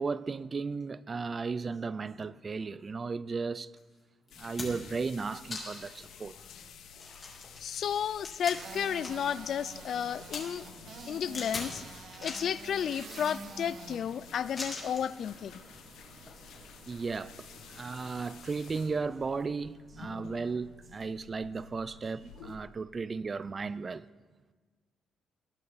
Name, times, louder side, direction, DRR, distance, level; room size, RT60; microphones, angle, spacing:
voice 1, 0.0-3.7 4.4-6.4 16.9-17.4 17.7-24.1, right 4 dB, 35° right, 0.4 m, -35 dB
sound 1, 3.8-3.9 4.3-5.0 5.5-6.0 6.4-6.5 6.9-9.3 9.6-10.4 11.3-11.7 12.1-12.5 13.0-13.7 14.6-15.1 16.2-16.3, left 3 dB, 30° left, 3.4 m, -41 dB
sound 2, 4.3-22.6, left 6 dB, 80° left, 1.2 m, -52 dB
voice 2, 7.6-10.7 11.1-11.8 12.2-15.5, left 8 dB, 60° left, 0.3 m, -32 dB
sound 3, 8.5-19.4, right 4 dB, 65° right, 1.4 m, -49 dB
20.0 x 8.4 x 4.1 m
cardioid pair, 90°, 0 cm